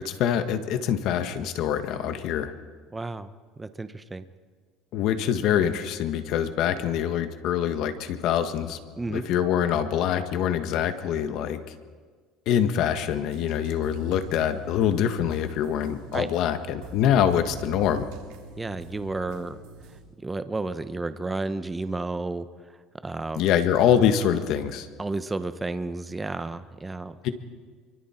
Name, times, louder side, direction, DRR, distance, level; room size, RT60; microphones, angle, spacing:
voice 1, 0.0-2.5 4.9-8.8 9.1-11.6 12.4-18.1 23.4-24.9 27.2-27.3, left 9 dB, 60° left, 9 dB, 1.6 m, -24 dB
voice 2, 2.9-3.3 3.6-4.2 9.0-9.2 16.1-16.3 18.6-19.6 20.2-22.5 23.0-23.4 25.0-27.2, right 3 dB, 10° right, 11 dB, 0.9 m, -31 dB
sound 1, 13.0-20.0, right 4 dB, 85° right, 3.9 m, -46 dB
28.0 x 24.0 x 4.5 m, 1.5 s
cardioid pair, 135°, 0 cm